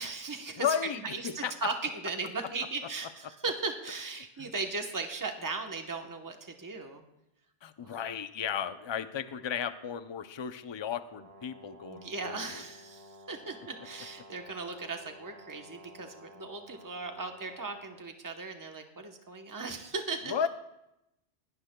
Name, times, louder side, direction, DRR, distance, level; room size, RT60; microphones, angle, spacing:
voice 1, 0.0-0.8 1.0-7.0 7.8-8.0 11.9-20.5, right 4 dB, 20° right, 4 dB, 1.0 m, -37 dB
voice 2, 0.6-1.7 4.4-4.5 7.6-12.6 20.3-20.5, left 8 dB, 40° left, 11 dB, 0.4 m, -34 dB
Brass instrument, 11.1-18.1, equal, 60° right, 1.2 m, -53 dB
21.5 x 17.0 x 2.3 m, 0.89 s
omnidirectional pair, 1.2 m